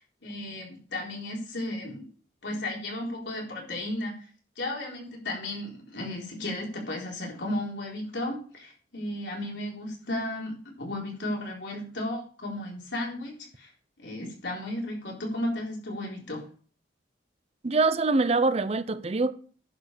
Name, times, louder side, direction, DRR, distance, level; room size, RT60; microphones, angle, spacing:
voice 1, 0.0-2.1 2.4-4.3 4.6-13.7 14.0-16.4, left 1 dB, 80° left, 4.0 m, -34 dB
voice 2, 17.6-19.3, right 3 dB, 35° right, 0.6 m, -24 dB
10.5 x 5.2 x 6.7 m
head